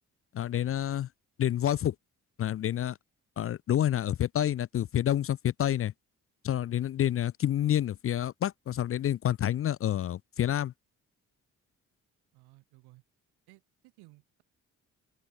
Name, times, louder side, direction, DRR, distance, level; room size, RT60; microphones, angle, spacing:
voice 1, 0.3-1.1 1.4-1.9 2.4-3.0 3.4-5.9 6.4-10.7, left 11 dB, 35° left, 0.4 m, -28 dB
voice 2, 12.3-13.0 13.5-14.4, right 22 dB, 80° right, 3.9 m, -58 dB
open air
hypercardioid pair, 45°, 39 cm